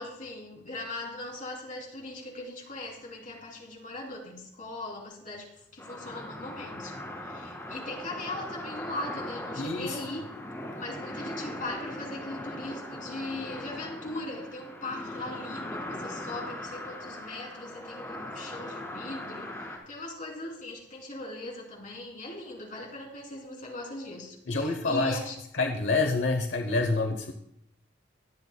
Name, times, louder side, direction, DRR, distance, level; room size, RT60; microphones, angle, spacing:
voice 1, 0.0-7.0 7.2-10.3 10.8-25.4, left 2 dB, 45° left, -1 dB, 3.1 m, -39 dB
sound 1, 5.8-19.8, left 1 dB, 15° left, 2.1 m, -40 dB
voice 2, 9.6-10.0 10.7-10.8 24.5-25.2 25.6-27.3, left 3 dB, 80° left, 5 dB, 0.9 m, -27 dB
23.5 x 8.3 x 2.2 m, 0.79 s
head